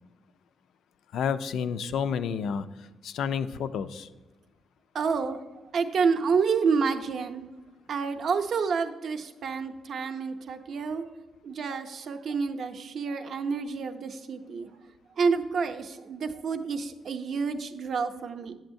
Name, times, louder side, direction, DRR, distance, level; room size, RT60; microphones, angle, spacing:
voice 1, 1.1-4.1, left 7 dB, 75° left, 12 dB, 0.3 m, -30 dB
voice 2, 4.9-5.4 5.7-7.4 7.9-11.0 11.4-14.7 15.2-18.5, right 5 dB, 55° right, 6 dB, 0.5 m, -29 dB
8.8 x 6.9 x 2.6 m, 1.1 s
cardioid pair, 135°, 0 cm